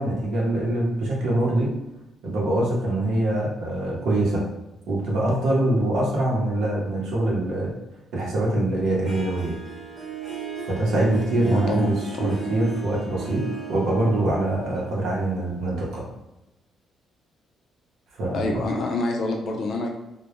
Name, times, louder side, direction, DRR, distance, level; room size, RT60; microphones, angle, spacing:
voice 1, 0.0-1.7 2.2-4.4 4.9-7.7 8.1-9.5 10.6-16.0 18.2-18.6, right 1 dB, 80° right, -3 dB, 0.7 m, -24 dB
Harp, 9.1-15.9, right 6 dB, 30° right, 0.9 m, -36 dB
voice 2, 11.5-11.9 12.1-12.3 18.3-19.9, left 2 dB, 60° left, 2 dB, 0.4 m, -27 dB
2.1 x 2.0 x 2.9 m, 0.96 s
cardioid pair, 90°, 0 cm